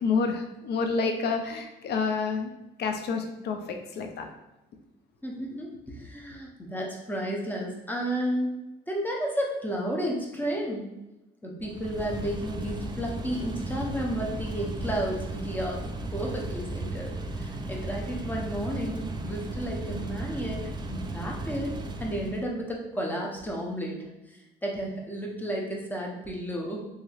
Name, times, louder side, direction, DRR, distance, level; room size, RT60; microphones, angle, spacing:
voice 1, 0.0-2.5 2.8-4.3, left 4 dB, 60° left, 5 dB, 0.5 m, -28 dB
voice 2, 5.2-8.5 8.9-10.9 11.4-15.8 16.1-20.6 20.9-21.7 22.0-26.9, equal, 10° left, -1 dB, 0.7 m, -32 dB
sound 1, 11.6-22.5, right 2 dB, 25° right, 0.3 m, -35 dB
2.9 x 2.7 x 2.4 m, 0.97 s
supercardioid pair, 70°, 19 cm